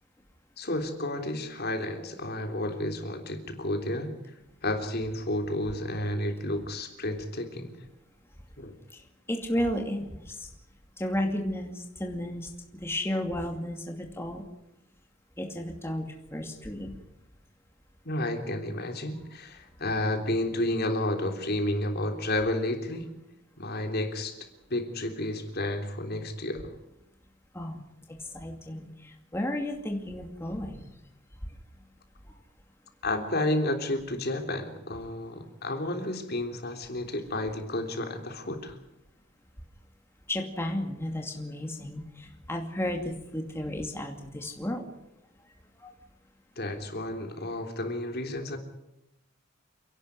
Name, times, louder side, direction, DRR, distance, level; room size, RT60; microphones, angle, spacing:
voice 1, 0.6-4.1 4.6-7.8 8.6-8.8 18.1-23.1 23.6-26.8 33.0-38.8 46.6-48.6, left 1 dB, 50° left, 5 dB, 3.4 m, -31 dB
voice 2, 8.9-10.5 11.0-14.4 15.4-17.0 27.5-27.8 28.1-30.9 31.4-31.5 32.3-32.4 40.3-44.9 45.8-45.9, left 1 dB, 10° left, 2 dB, 2.5 m, -33 dB
29.5 x 11.5 x 9.8 m, 0.90 s
head